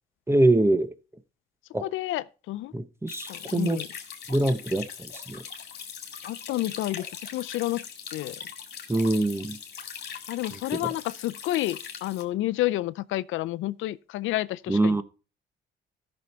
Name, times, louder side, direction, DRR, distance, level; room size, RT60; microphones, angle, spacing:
voice 1, 0.3-0.9 1.7-1.9 2.7-3.8 4.3-5.4 8.9-9.6 10.5-10.9 14.7-15.0, right 2 dB, 10° right, 0.9 m, -24 dB
voice 2, 1.8-2.7 3.3-3.9 6.2-7.9 8.1-8.4 10.3-15.0, left 16 dB, 85° left, 0.5 m, -30 dB
sound 1, 3.1-12.2, left 7 dB, 55° left, 2.1 m, -41 dB
14.0 x 6.3 x 4.3 m
cardioid pair, 90°, 20 cm